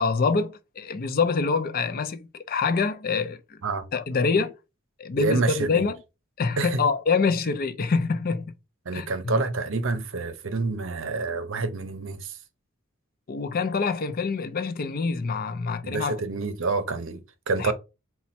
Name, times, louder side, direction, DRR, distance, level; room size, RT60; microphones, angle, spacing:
voice 1, 0.0-3.6 3.9-4.5 5.0-6.0 6.4-8.5 8.9-9.3 13.3-16.2 17.6-17.7, left 4 dB, 45° left, 0.5 m, -26 dB
voice 2, 5.1-5.9 6.6-6.8 8.9-12.4 15.8-17.7, right 3 dB, 65° right, 0.7 m, -28 dB
4.2 x 2.3 x 4.1 m
head